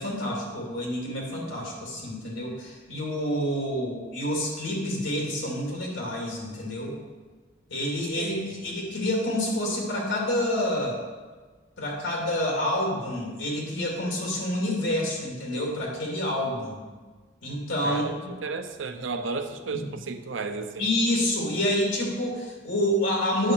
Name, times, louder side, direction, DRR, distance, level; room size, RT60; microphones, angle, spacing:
voice 1, 0.0-7.0 7.7-11.0 11.8-16.8 17.4-18.0 19.7-19.9 20.8-23.5, left 1 dB, 80° left, -2 dB, 2.4 m, -28 dB
voice 2, 8.2-8.7 17.8-20.9, right 4 dB, 85° right, 7 dB, 0.6 m, -33 dB
8.8 x 6.3 x 4.5 m, 1.4 s
head